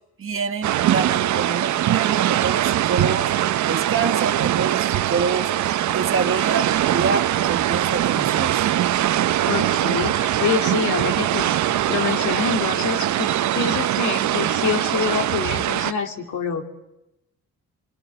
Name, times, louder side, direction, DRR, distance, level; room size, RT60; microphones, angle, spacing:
voice 1, 0.2-3.3 3.7-8.7, right 5 dB, 45° right, 6 dB, 2.0 m, -27 dB
sound 1, 0.6-15.9, right 12 dB, 70° right, 0.9 m, -22 dB
voice 2, 9.5-16.6, left 6 dB, 70° left, 3 dB, 3.0 m, -26 dB
24.5 x 23.5 x 7.7 m, 0.90 s
cardioid pair, 90°, 30 cm